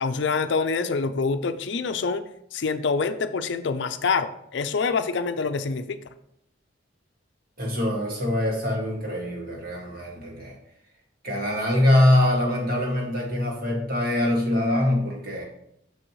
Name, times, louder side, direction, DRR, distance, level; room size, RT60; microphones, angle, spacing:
voice 1, 0.0-2.2 2.5-6.0, left 4 dB, 65° left, 10 dB, 0.5 m, -26 dB
voice 2, 7.6-10.6 11.2-15.5, left 1 dB, 50° right, -1 dB, 1.9 m, -23 dB
6.8 x 6.3 x 3.1 m, 0.74 s
head